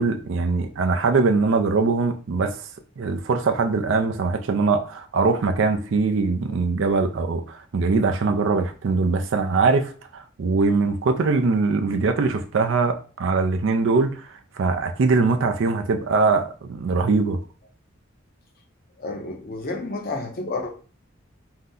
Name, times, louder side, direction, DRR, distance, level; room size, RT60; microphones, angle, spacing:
voice 1, 0.0-2.5 3.0-17.4, right 4 dB, 65° right, 0.4 m, -22 dB
voice 2, 19.0-20.7, left 3 dB, 45° left, 0.6 m, -30 dB
2.7 x 2.1 x 3.5 m
head